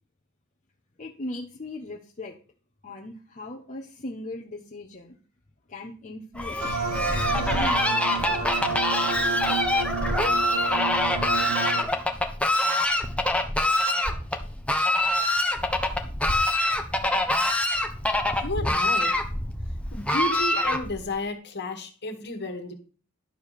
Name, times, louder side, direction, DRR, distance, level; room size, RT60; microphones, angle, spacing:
voice 1, 1.0-2.4 2.8-5.2 5.7-6.7 7.0-8.5 8.9-9.6, left 1 dB, 35° left, 0 dB, 1.1 m, -39 dB
Fowl, 6.3-21.1, left 1 dB, 5° left, 1.1 m, -25 dB
sound 1, 6.6-11.8, right 4 dB, 80° right, 2.7 m, -30 dB
sound 2, 13.8-19.9, equal, 50° right, 2.2 m, -40 dB
voice 2, 18.4-19.1 19.9-22.7, left 2 dB, 50° left, 5 dB, 1.9 m, -32 dB
11.5 x 4.7 x 6.8 m, 0.38 s
head